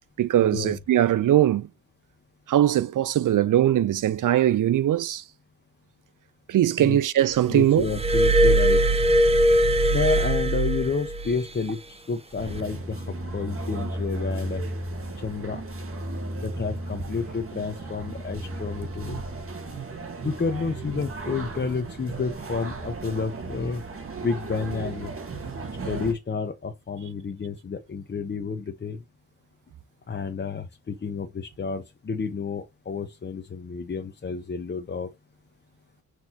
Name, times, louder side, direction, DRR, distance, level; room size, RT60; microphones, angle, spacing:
voice 1, 0.2-1.7 2.5-5.2 6.5-7.8, right 12 dB, 70° right, 0.7 m, -21 dB
voice 2, 7.5-8.8 9.9-14.6 15.2-15.6 16.4-19.2 20.2-23.8 24.2-25.1 25.8-29.0 30.1-35.1, left 5 dB, 35° left, 1.0 m, -30 dB
Glass, 7.8-11.4 12.4-12.6, right 1 dB, 20° right, 0.9 m, -20 dB
sound 1, 12.4-26.1, right 2 dB, 40° right, 2.2 m, -35 dB
6.2 x 5.2 x 2.9 m
cardioid pair, 100°, 33 cm